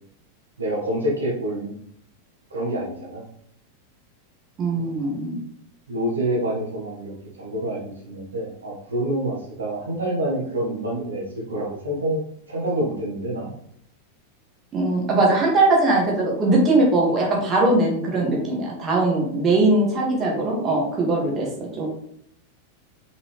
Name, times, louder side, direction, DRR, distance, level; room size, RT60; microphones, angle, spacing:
voice 1, 0.6-1.7 2.5-3.2 4.7-4.9 5.9-7.1 7.4-12.2 12.5-13.5, right 1 dB, 70° right, -4 dB, 1.6 m, -27 dB
voice 2, 4.6-5.4 14.7-21.9, right 2 dB, 30° right, -2 dB, 2.0 m, -20 dB
5.6 x 5.3 x 3.3 m, 0.68 s
figure-of-eight pair, 90°, 0 cm